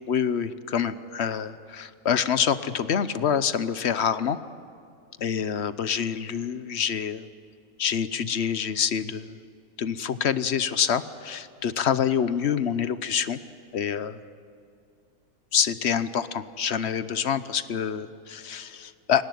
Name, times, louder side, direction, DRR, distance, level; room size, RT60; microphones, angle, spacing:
voice 1, 0.1-4.4 5.2-7.3 7.8-9.4 9.8-13.4 13.7-14.2 15.5-19.2, left 8 dB, 50° left, 13 dB, 1.0 m, -26 dB
29.5 x 18.0 x 9.3 m, 2.3 s
omnidirectional pair, 1.6 m